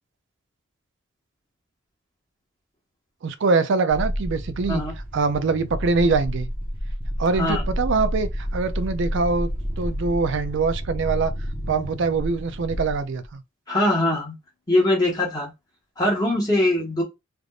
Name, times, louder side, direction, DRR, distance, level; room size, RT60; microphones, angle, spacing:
voice 1, 3.2-4.8 5.1-6.5 7.2-11.3 11.7-13.4, right 4 dB, 60° right, 0.4 m, -23 dB
sound 1, 3.9-13.3, equal, 5° right, 0.9 m, -30 dB
voice 2, 13.7-14.3 14.7-15.5 16.0-17.0, left 1 dB, 20° left, 1.2 m, -21 dB
3.4 x 2.5 x 2.4 m
head